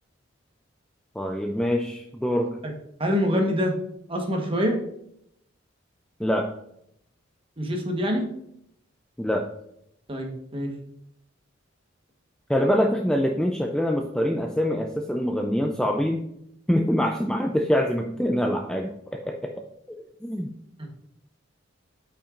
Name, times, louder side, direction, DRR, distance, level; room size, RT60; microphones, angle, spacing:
voice 1, 1.2-2.6 6.2-6.5 9.2-9.5 12.5-16.3 16.7-19.5 19.9-20.0 20.2-20.5, equal, 5° left, 3 dB, 0.4 m, -25 dB
voice 2, 3.0-3.7 4.1-4.8 7.6-8.2 10.1-10.7 20.8-20.9, equal, 25° right, 3 dB, 1.2 m, -25 dB
8.6 x 5.8 x 2.5 m, 0.74 s
head